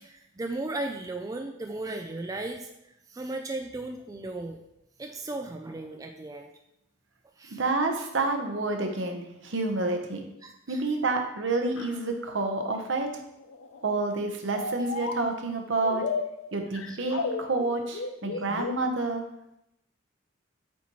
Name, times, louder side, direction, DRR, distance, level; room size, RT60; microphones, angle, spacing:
voice 1, 0.0-2.7 3.1-4.6 5.0-6.5 7.4-7.6 10.4-10.8 14.8-14.9 16.9-17.0 18.3-18.6, right 2 dB, 20° right, 3 dB, 0.3 m, -36 dB
voice 2, 7.5-10.2 10.7-13.1 13.8-16.0 16.5-19.2, right 3 dB, 70° right, 4 dB, 0.9 m, -29 dB
sound 1, 11.8-12.0 12.7-12.8 13.4-14.0 14.5-15.4 15.8-18.8, left 4 dB, 90° left, 0.5 m, -34 dB
8.2 x 4.3 x 3.0 m, 0.83 s
head